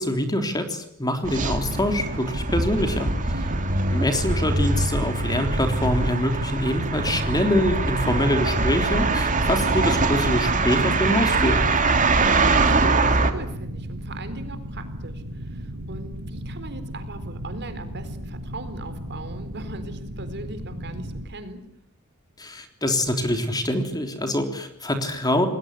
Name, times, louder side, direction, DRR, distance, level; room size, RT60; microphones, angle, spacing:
voice 1, 0.0-3.3 3.9-11.6 22.4-25.5, left 1 dB, 20° left, 6 dB, 3.6 m, -25 dB
sound 1, 1.2-13.3, right 3 dB, 35° right, 2.6 m, -23 dB
sound 2, 1.6-21.3, equal, 80° right, 6.1 m, -35 dB
voice 2, 3.3-3.6 11.8-21.6, right 2 dB, 50° right, 10 dB, 4.2 m, -39 dB
28.5 x 20.5 x 9.8 m, 0.72 s
head